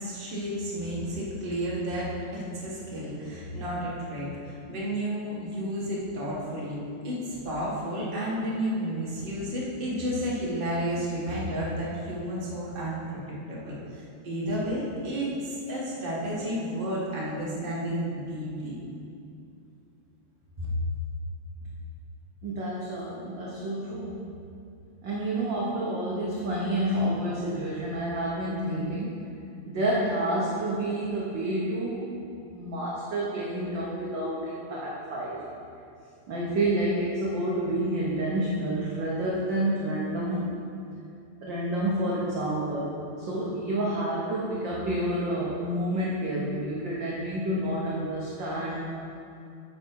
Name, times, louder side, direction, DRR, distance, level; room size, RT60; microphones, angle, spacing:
voice 1, 0.0-6.8 7.0-18.8 20.6-20.7, equal, 25° right, -6 dB, 1.4 m, -32 dB
voice 2, 22.4-24.2 25.0-29.3 29.6-32.1 32.5-35.4 36.3-40.6 41.4-43.0 43.3-48.9, right 1 dB, 60° right, -5 dB, 1.2 m, -29 dB
9.0 x 6.8 x 4.6 m, 2.5 s
omnidirectional pair, 3.4 m